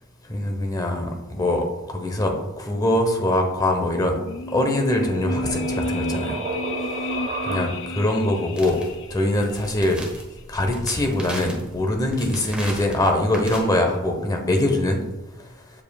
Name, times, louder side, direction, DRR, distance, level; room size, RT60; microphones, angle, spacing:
voice 1, 0.3-4.2 4.5-6.4 7.5-8.8 9.1-10.0 10.5-15.0, left 1 dB, 20° left, 3 dB, 0.9 m, -23 dB
sound 1, 4.2-9.5 9.8-9.9, left 2 dB, 60° left, 0.6 m, -31 dB
sound 2, 4.4-8.1, right 3 dB, 35° right, 0.4 m, -33 dB
sound 3, 8.5-13.6, right 1 dB, 5° right, 1.2 m, -38 dB
7.7 x 7.3 x 2.3 m, 1.0 s
head